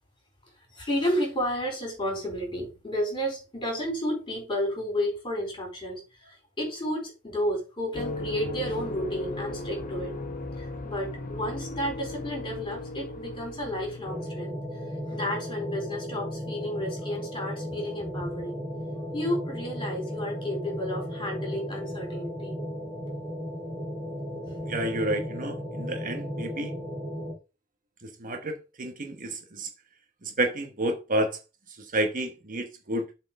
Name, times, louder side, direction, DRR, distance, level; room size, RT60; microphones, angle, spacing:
voice 1, 0.6-10.1 10.6-14.6 15.1-18.6 19.1-22.6, equal, 25° left, 4.3 m, -32 dB
sound 1, 7.9-14.3, left 2 dB, 40° left, 1.1 m, -36 dB
sound 2, 14.0-27.3, equal, 10° right, 3.4 m, -35 dB
voice 2, 24.6-26.7 28.0-29.7 30.2-31.4 31.7-33.0, right 1 dB, 40° right, 1.1 m, -30 dB
7.5 x 4.5 x 5.3 m
head